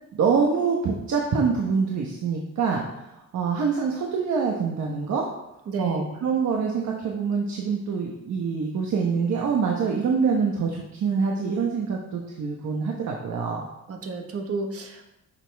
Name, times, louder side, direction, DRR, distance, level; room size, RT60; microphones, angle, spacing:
voice 1, 0.1-2.8 3.1-5.2 5.8-13.7, right 5 dB, 65° right, 0 dB, 1.2 m, -25 dB
voice 2, 5.7-6.0 13.9-15.0, right 3 dB, 50° right, 3 dB, 1.4 m, -31 dB
11.0 x 6.7 x 3.5 m, 0.90 s
cardioid pair, 155°, 30 cm